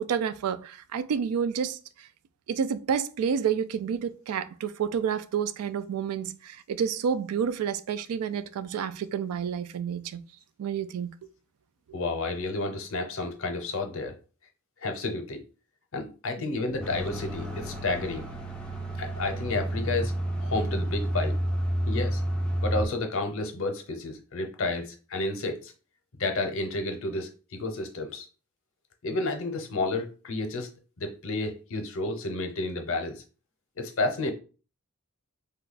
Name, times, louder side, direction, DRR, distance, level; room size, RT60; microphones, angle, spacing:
voice 1, 0.0-1.8 2.5-10.2 10.6-11.1, right 7 dB, 90° right, 0.3 m, -29 dB
voice 2, 11.9-14.1 14.8-15.4 15.9-18.3 19.0-20.1 20.4-21.4 21.9-22.2 22.6-25.7 26.2-28.3 29.0-30.7 31.0-33.2 33.8-34.3, left 2 dB, 65° left, 0.7 m, -31 dB
sound 1, 16.8-22.9, right 1 dB, 5° left, 0.4 m, -30 dB
2.7 x 2.3 x 3.9 m
head